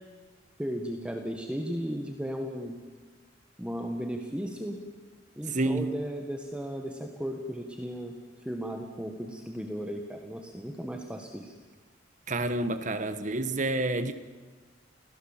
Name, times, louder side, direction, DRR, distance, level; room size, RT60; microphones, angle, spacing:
voice 1, 0.6-2.8 3.6-4.8 5.4-8.2 8.4-11.5, equal, 5° right, 1.6 m, -35 dB
voice 2, 5.5-5.9 12.3-14.1, right 2 dB, 40° right, 1.3 m, -29 dB
28.5 x 17.5 x 7.5 m
head